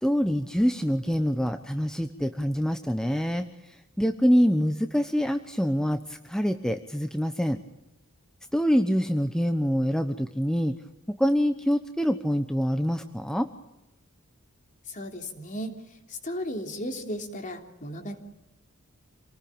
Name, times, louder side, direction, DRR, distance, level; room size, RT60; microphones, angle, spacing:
voice 1, 0.0-7.6 8.5-10.8 11.2-13.5, equal, 5° left, 7 dB, 1.0 m, -25 dB
voice 2, 14.9-15.8 16.1-18.2, equal, 35° left, 5 dB, 3.3 m, -35 dB
27.5 x 19.0 x 8.8 m, 0.93 s
head